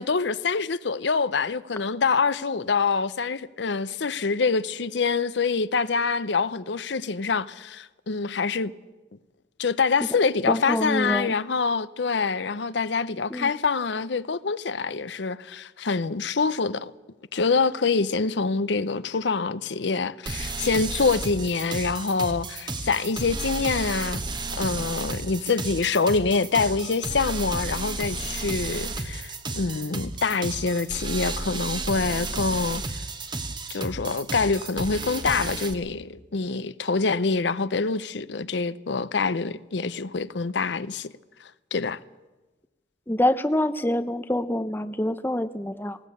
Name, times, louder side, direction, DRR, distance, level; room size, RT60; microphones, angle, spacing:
voice 1, 0.0-8.7 9.6-16.9 17.3-24.2 24.5-32.8 33.7-41.1 41.7-42.0, left 4 dB, 65° left, 0.6 m, -25 dB
voice 2, 10.5-11.3 13.3-13.5 43.1-46.0, left 1 dB, 10° left, 0.6 m, -25 dB
sound 1, 20.3-35.7, right 3 dB, 25° right, 1.1 m, -33 dB
19.5 x 17.5 x 8.5 m
head